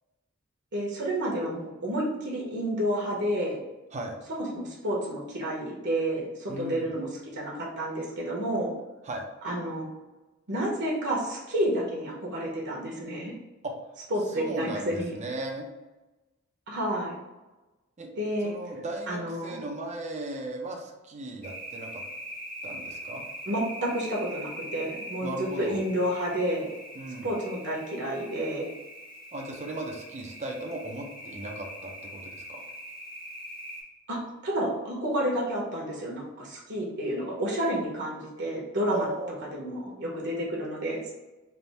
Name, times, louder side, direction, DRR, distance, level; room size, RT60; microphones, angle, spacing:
voice 1, 0.7-3.6 4.3-7.1 7.3-8.7 9.4-9.9 10.5-13.3 14.1-15.1 16.7-17.2 18.2-18.5 19.1-19.6 23.5-26.7 27.2-28.7 34.1-39.1 39.5-41.1, right 1 dB, 55° right, -3 dB, 1.0 m, -30 dB
voice 2, 6.5-6.9 9.0-9.3 13.6-13.7 14.3-15.7 18.0-18.1 18.4-22.0 22.6-23.2 25.2-25.8 26.9-27.3 29.3-32.6 38.9-39.3, right 1 dB, 35° right, 2 dB, 0.6 m, -36 dB
sound 1, 21.4-33.8, equal, 40° left, 1.3 m, -42 dB
3.4 x 2.6 x 4.1 m, 1.1 s
head